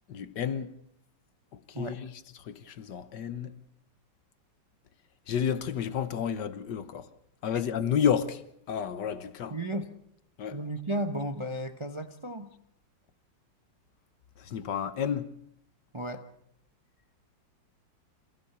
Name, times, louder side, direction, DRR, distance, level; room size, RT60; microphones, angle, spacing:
voice 1, 0.1-0.7 1.5-2.1 2.4-3.5 5.3-7.1 7.4-8.4 8.7-9.6 10.4-10.6 14.4-15.3, left 8 dB, 70° left, 1.7 m, -31 dB
voice 2, 9.5-9.9 10.5-12.5 15.9-16.2, right 1 dB, 25° right, 0.7 m, -34 dB
26.5 x 15.5 x 6.9 m
omnidirectional pair, 2.0 m